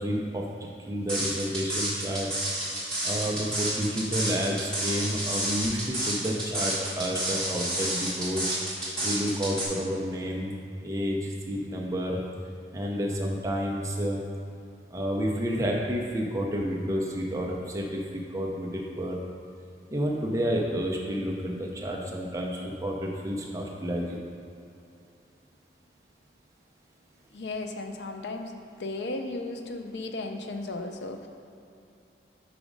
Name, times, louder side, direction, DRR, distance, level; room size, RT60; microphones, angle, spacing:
voice 1, 0.0-2.3 3.0-8.4 9.0-10.6 10.8-12.2 12.7-14.2 14.9-19.2 19.9-24.2, equal, 20° right, -2 dB, 0.5 m, -30 dB
sound 1, 1.1-9.6, right 1 dB, 5° left, 1.3 m, -30 dB
voice 2, 27.3-28.5 28.8-31.3, left 2 dB, 80° left, 5 dB, 0.5 m, -35 dB
5.0 x 5.0 x 5.1 m, 2.7 s
head